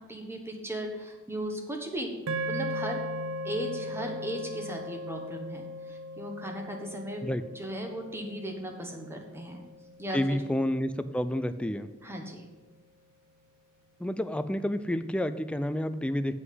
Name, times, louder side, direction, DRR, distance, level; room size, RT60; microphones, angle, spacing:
voice 1, 0.1-2.2 2.4-3.0 3.4-7.3 7.5-9.6 10.0-10.2 12.0-12.4, equal, 10° right, 2 dB, 1.4 m, -36 dB
sound 1, 2.3-10.6, equal, 75° right, 0.6 m, -38 dB
voice 2, 10.1-11.9 14.0-16.4, left 1 dB, 5° left, 11 dB, 0.4 m, -29 dB
8.0 x 5.7 x 7.6 m, 1.2 s
head